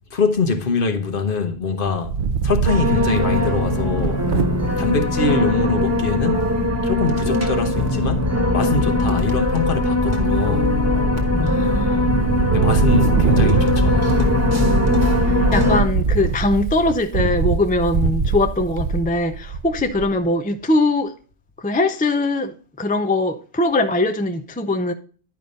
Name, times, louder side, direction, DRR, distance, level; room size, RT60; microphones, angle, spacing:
voice 1, 0.1-4.3 4.8-6.6 6.8-10.7 12.5-14.5, left 4 dB, 55° left, 1.1 m, -24 dB
Wind, 1.9-5.0 5.5-5.6 5.8-6.2 7.6-8.2 8.7-9.2 9.6-10.7 11.2-11.7 12.0-20.2, right 6 dB, 55° right, 0.8 m, -24 dB
sound 1, 2.7-15.8, left 1 dB, 15° right, 1.2 m, -20 dB
voice 2, 11.3-12.1 15.3-21.1 21.6-24.9, left 2 dB, 10° left, 0.4 m, -21 dB
11.0 x 5.1 x 4.0 m
omnidirectional pair, 1.1 m